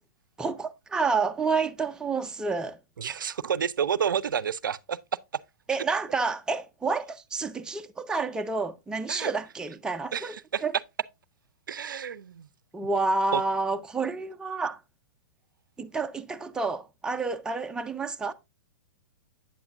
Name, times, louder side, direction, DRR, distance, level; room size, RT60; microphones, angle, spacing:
voice 1, 0.4-2.8 5.7-10.7 12.7-14.8 15.8-18.3, right 4 dB, 5° right, 0.4 m, -29 dB
voice 2, 3.0-5.0 9.1-9.3 10.1-10.6 11.7-12.5 13.3-13.4, right 8 dB, 85° right, 0.4 m, -29 dB
8.6 x 7.1 x 2.5 m
hypercardioid pair, 120°, 11 cm